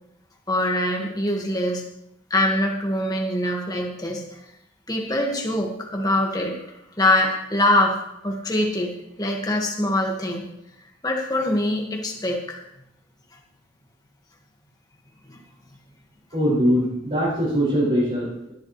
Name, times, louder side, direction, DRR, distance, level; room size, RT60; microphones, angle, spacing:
voice 1, 0.5-1.8 2.3-4.4 4.9-6.6 7.0-8.0 8.2-8.9 9.2-10.5 11.0-12.6 15.3-15.4, left 1 dB, 20° left, 0 dB, 1.8 m, -23 dB
voice 2, 16.3-18.5, equal, 35° right, -9 dB, 5.3 m, -22 dB
16.5 x 11.0 x 3.3 m, 0.84 s
head